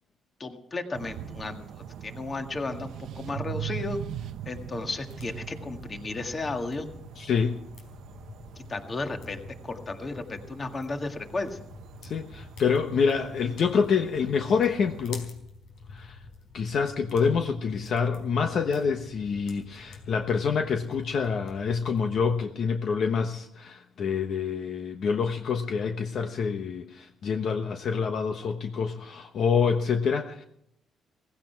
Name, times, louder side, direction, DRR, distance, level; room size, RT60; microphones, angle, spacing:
voice 1, 0.4-4.0 4.5-6.9 8.6-11.6, left 3 dB, 30° left, 5 dB, 1.9 m, -34 dB
sound 1, 0.9-15.1, right 10 dB, 75° right, 0.8 m, -42 dB
sound 2, 3.8-22.4, left 3 dB, 75° left, 4.3 m, -48 dB
voice 2, 7.2-7.6 12.0-15.3 15.9-16.2 16.5-30.4, left 6 dB, 55° left, 5 dB, 1.1 m, -27 dB
17.0 x 16.0 x 4.6 m, 0.74 s
cardioid pair, 115°, 0 cm